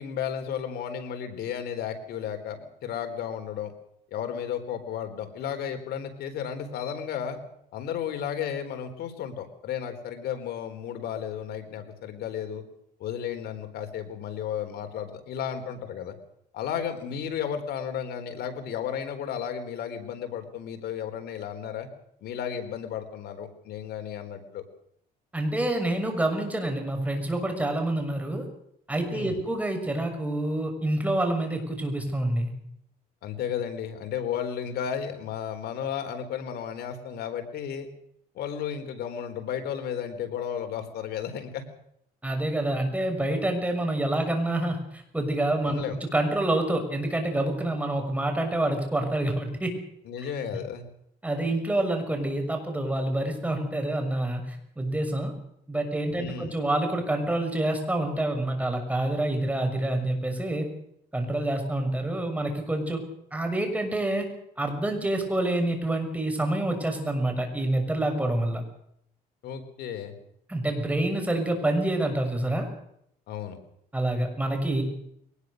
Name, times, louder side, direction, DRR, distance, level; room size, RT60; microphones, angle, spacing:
voice 1, 0.0-3.7 4.1-7.4 7.7-12.6 13.0-16.2 16.5-21.9 22.2-24.6 29.1-29.4 33.2-37.9 38.3-41.6 45.7-46.0 50.1-50.8 56.1-56.5 69.4-70.2 73.3-73.6, left 8 dB, 70° left, 7 dB, 4.2 m, -33 dB
voice 2, 25.3-28.4 28.9-32.5 42.2-49.8 51.2-55.3 55.7-60.7 61.1-63.0 63.3-64.3 64.6-68.6 70.5-72.7 73.9-74.8, right 1 dB, 10° right, 4 dB, 6.4 m, -27 dB
22.0 x 20.0 x 6.6 m, 0.71 s
cardioid pair, 110°, 17 cm